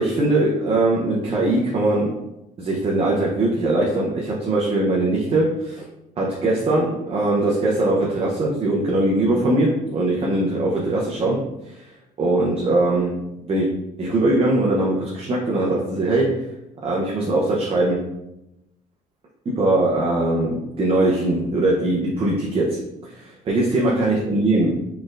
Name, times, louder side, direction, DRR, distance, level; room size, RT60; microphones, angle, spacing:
voice 1, 0.0-2.2 2.6-5.8 6.2-11.8 12.2-13.2 13.5-13.7 14.0-16.5 16.8-18.1 19.5-24.7, right 2 dB, 35° right, -3 dB, 0.7 m, -21 dB
4.2 x 3.3 x 2.5 m, 0.89 s
cardioid pair, 110°, 17 cm